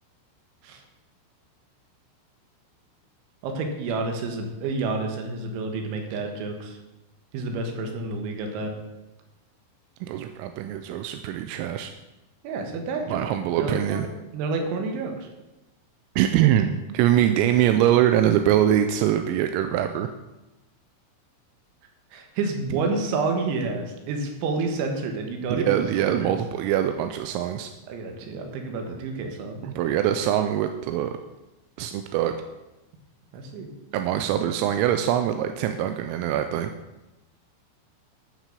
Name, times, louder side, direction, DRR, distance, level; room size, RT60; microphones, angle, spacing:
voice 1, 3.4-6.8 7.3-8.7 12.4-13.2 13.6-15.3 22.1-26.3 27.9-29.9 33.3-33.7, right 3 dB, 70° right, 4 dB, 3.7 m, -29 dB
voice 2, 10.0-11.9 13.1-14.1 16.2-20.1 25.5-27.7 29.6-31.2 31.8-32.4 33.9-36.7, right 11 dB, 85° right, 7 dB, 3.2 m, -23 dB
14.5 x 6.2 x 6.7 m, 1.0 s
omnidirectional pair, 5.9 m